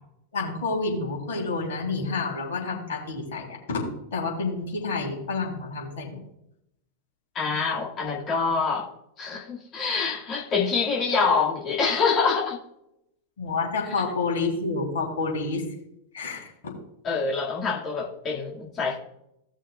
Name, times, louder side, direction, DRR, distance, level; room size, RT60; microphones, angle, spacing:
voice 1, 0.3-6.2 13.4-15.6 16.1-16.8, left 3 dB, 60° left, -2 dB, 3.4 m, -29 dB
voice 2, 7.3-8.9 9.2-12.6 17.0-19.0, left 5 dB, 30° left, -4 dB, 2.2 m, -25 dB
18.0 x 6.3 x 2.4 m, 0.80 s
figure-of-eight pair, 90°, 0 cm